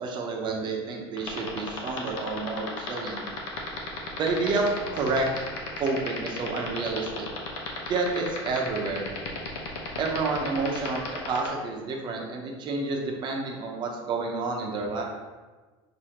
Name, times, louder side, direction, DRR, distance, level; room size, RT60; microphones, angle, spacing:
voice 1, 0.0-3.2 4.1-5.5 5.8-7.3 7.9-9.1 10.0-15.0, right 3 dB, 35° right, 0 dB, 0.7 m, -29 dB
sound 1, 1.2-11.5, left 6 dB, 90° left, 0.8 m, -34 dB
6.2 x 2.7 x 2.9 m, 1.3 s
cardioid pair, 150°, 13 cm